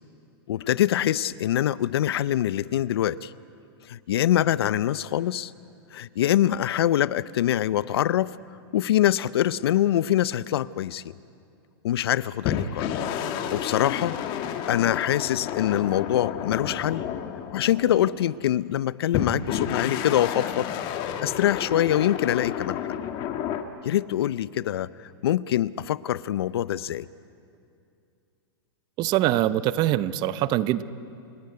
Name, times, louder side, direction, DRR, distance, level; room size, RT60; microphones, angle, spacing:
voice 1, 0.5-3.3 3.9-5.5 5.9-8.3 8.7-11.0 11.8-12.9 13.3-14.2 14.7-17.0 17.5-20.7 21.2-23.0 23.8-27.1, left 12 dB, 80° left, 19 dB, 0.5 m, -24 dB
sound 1, 12.4-18.4 19.1-23.6, left 9 dB, 40° left, 1.4 m, -31 dB
voice 2, 29.0-30.8, right 14 dB, 35° right, 15 dB, 0.7 m, -23 dB
29.5 x 10.5 x 9.5 m, 2.5 s
hypercardioid pair, 140°, 13 cm